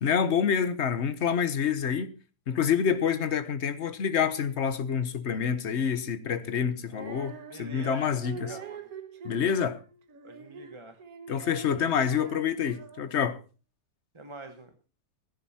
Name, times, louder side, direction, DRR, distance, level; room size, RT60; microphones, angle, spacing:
voice 1, 0.0-2.1 2.5-8.6 9.2-9.8 11.3-13.4, left 7 dB, 45° left, 1.2 m, -27 dB
Female singing, 6.9-13.3, right 6 dB, 60° right, 1.8 m, -45 dB
voice 2, 7.5-8.9 10.2-11.0 14.1-14.7, right 2 dB, 20° right, 1.0 m, -46 dB
16.5 x 11.0 x 4.3 m
omnidirectional pair, 1.7 m